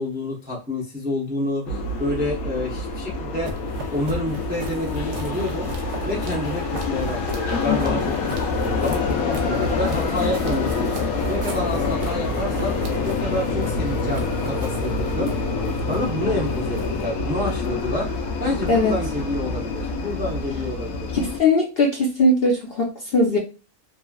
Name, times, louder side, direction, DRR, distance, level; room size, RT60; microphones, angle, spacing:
voice 1, 0.0-3.5 3.9-5.7 6.0-10.9 11.3-15.3 15.9-21.1, left 1 dB, 15° right, 0.4 m, -28 dB
sound 1, 1.7-21.4, left 4 dB, 85° left, 1.1 m, -26 dB
sound 2, 3.4-17.1, right 1 dB, 60° right, 0.9 m, -34 dB
voice 2, 18.7-19.0 21.4-23.4, left 2 dB, 55° left, 0.7 m, -19 dB
2.9 x 2.4 x 2.2 m
omnidirectional pair, 1.5 m